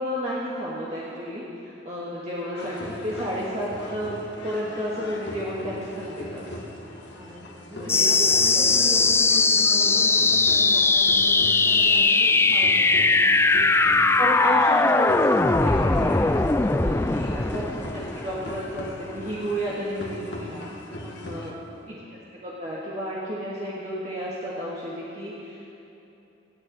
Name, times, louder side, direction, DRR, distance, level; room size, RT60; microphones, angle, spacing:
voice 1, 0.0-6.5 7.8-8.6 14.2-16.4 16.8-17.6 17.9-20.8 21.3-21.5 21.9-22.0 22.3-25.7, equal, 35° right, -8 dB, 1.9 m, -32 dB
sound 1, 2.6-21.5, left 1 dB, 70° left, 1.6 m, -40 dB
voice 2, 7.1-13.1 16.6-17.2 21.0-21.6, equal, 15° right, -7 dB, 3.3 m, -39 dB
sound 2, 7.9-18.9, left 3 dB, 15° left, 0.3 m, -20 dB
27.0 x 9.3 x 4.2 m, 2.9 s
head